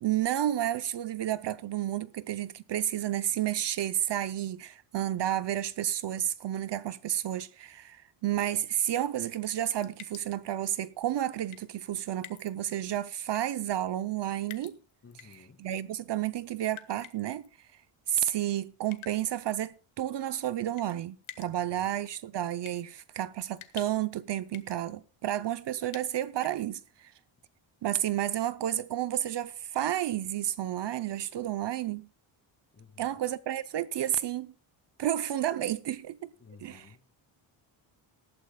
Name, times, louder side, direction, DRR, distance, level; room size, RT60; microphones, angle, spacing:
voice 1, 0.0-14.8 15.3-17.5 18.1-27.1 27.8-32.1 33.0-34.5 35.0-36.3 36.6-36.9, right 12 dB, 55° right, 0.7 m, -31 dB
sound 1, 9.7-10.5 11.5-11.9 12.2-12.5 13.3-13.6 14.5-15.4 16.7-17.5 18.9-19.3 20.8-21.0 21.2-21.5 21.8-21.9 22.7-22.8 23.6-24.2 24.5-24.8 25.9-26.6, left 11 dB, 70° left, 1.6 m, -47 dB
voice 2, 15.0-15.7 21.5-21.9 32.7-33.2 36.4-37.1, left 5 dB, 30° left, 2.5 m, -54 dB
19.0 x 12.5 x 2.3 m
cardioid pair, 145°, 50 cm